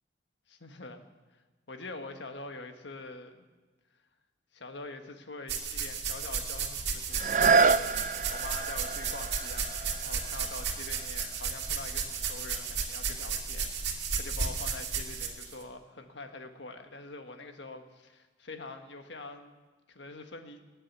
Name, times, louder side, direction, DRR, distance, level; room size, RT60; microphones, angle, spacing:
voice 1, 0.5-1.0 1.3-1.4 1.7-3.5 4.5-19.6 19.9-20.6, left 3 dB, 75° left, 6 dB, 1.5 m, -45 dB
sound 1, 5.5-15.5, right 6 dB, 65° right, 2.3 m, -34 dB
sound 2, 7.1-12.8 13.3-13.4, right 5 dB, 40° right, 0.4 m, -29 dB
19.0 x 7.5 x 9.6 m, 1.3 s
head